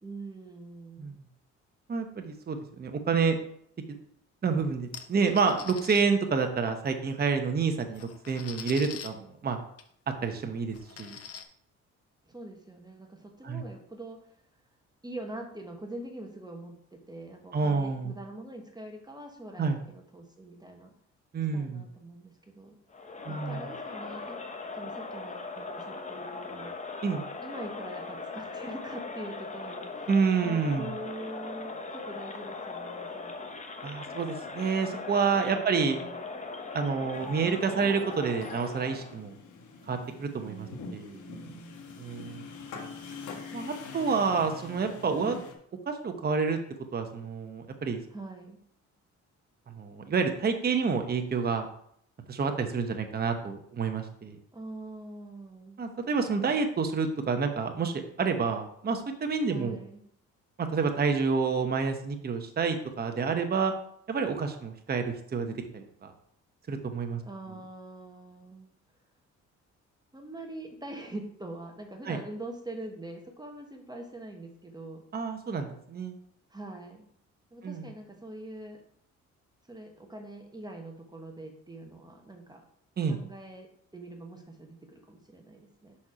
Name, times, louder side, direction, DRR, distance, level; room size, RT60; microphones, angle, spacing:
voice 1, 0.0-1.2 12.3-14.3 15.0-20.9 21.5-22.8 23.3-24.4 24.7-26.8 27.4-30.1 30.4-33.6 35.5-36.3 40.4-42.1 48.1-48.6 54.5-55.8 59.5-60.0 67.2-68.7 70.1-75.0 76.5-77.1 77.5-78.8 79.7-82.6 83.0-86.0, right 1 dB, 15° right, 3 dB, 1.1 m, -44 dB
voice 2, 1.9-3.4 4.4-9.6 10.2-11.2 13.4-13.6 17.5-18.1 19.6-19.8 21.3-21.8 23.3-23.7 27.0-27.2 30.1-30.9 33.8-36.0 36.7-39.3 39.9-41.2 42.0-42.4 43.5-45.4 45.9-46.6 46.9-48.0 49.7-51.7 52.3-54.4 55.8-59.8 60.6-63.7 64.1-66.1 66.7-67.2 72.1-72.2 75.1-76.1 77.6-77.9 83.0-83.2, right 5 dB, 30° right, 5 dB, 0.9 m, -29 dB
sound 1, 4.9-6.0 7.3-7.4 7.8-9.1 9.8-9.9 10.2-10.3 10.7-11.4, left 8 dB, 50° left, 0.8 m, -43 dB
Crowd, 22.9-39.2, left 3 dB, 25° left, 0.9 m, -39 dB
sound 2, 37.1-45.5, left 4 dB, 80° left, 1.2 m, -44 dB
6.0 x 4.3 x 4.9 m, 0.68 s
cardioid pair, 90°, 30 cm